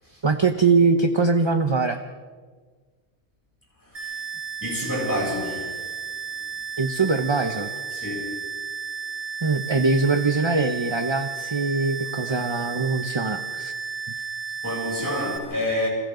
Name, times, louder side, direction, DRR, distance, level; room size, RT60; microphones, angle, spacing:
voice 1, 0.2-2.0 6.8-7.7 9.4-13.7, right 4 dB, 25° right, 0.9 m, -22 dB
voice 2, 3.8-4.2 4.6-6.5 7.9-8.3 14.2-14.3 14.6-15.9, left 1 dB, 15° left, 7.8 m, -29 dB
sound 1, 3.9-15.4, right 7 dB, 70° right, 3.8 m, -33 dB
30.0 x 26.5 x 3.9 m
omnidirectional pair, 1.3 m